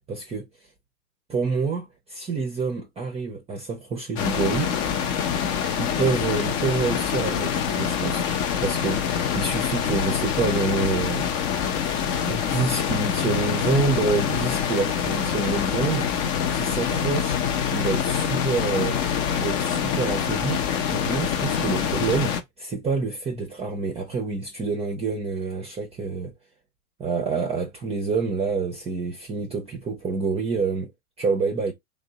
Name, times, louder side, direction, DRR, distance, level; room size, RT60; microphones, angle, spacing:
voice 1, 0.1-0.5 1.3-4.7 5.8-11.3 11.8-16.1 16.5-19.0 19.3-26.3 27.0-30.9 31.2-31.7, right 4 dB, 15° right, 0.6 m, -27 dB
sound 1, 4.2-22.4, left 8 dB, 40° left, 0.7 m, -25 dB
3.4 x 2.1 x 3.9 m
hypercardioid pair, 100°, 43 cm